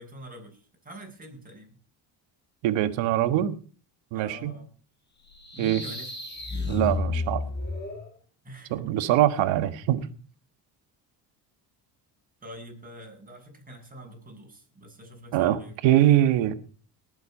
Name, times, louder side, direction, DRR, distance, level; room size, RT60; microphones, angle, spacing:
voice 1, 0.0-1.8 4.1-4.7 5.5-6.1 8.4-9.1 12.4-15.8, equal, 20° right, 1 dB, 6.9 m, -45 dB
voice 2, 2.6-3.5 4.1-4.5 5.6-5.8 6.7-7.4 8.7-10.1 15.3-15.6 15.8-16.5, right 13 dB, 85° right, 12 dB, 1.6 m, -23 dB
sound 1, 5.3-8.1, left 3 dB, 25° left, 7.7 m, -32 dB
19.5 x 8.1 x 5.5 m, 0.40 s
cardioid pair, 90°, 44 cm